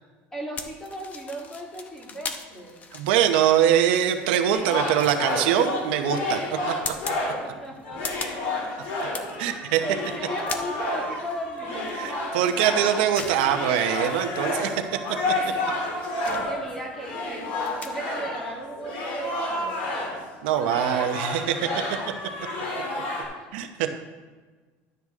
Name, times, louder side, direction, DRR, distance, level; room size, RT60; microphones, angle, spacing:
voice 1, 0.3-2.8 7.4-8.6 9.3-9.5 9.8-12.1 15.8-19.9 23.2-23.3 23.8-23.9, right 1 dB, 10° left, -1 dB, 1.7 m, -37 dB
sound 1, 0.6-17.9, left 5 dB, 30° left, 0.8 m, -41 dB
voice 2, 2.9-6.4 6.8-6.9 9.4-9.8 11.9-15.0 15.3-15.4 20.4-21.7 23.5-23.9, right 10 dB, 85° right, 6 dB, 0.9 m, -23 dB
sound 2, 4.5-7.5 7.8-20.3 20.6-23.2, left 2 dB, 90° left, 3.2 m, -30 dB
12.0 x 8.0 x 3.6 m, 1.4 s
cardioid pair, 155°, 5 cm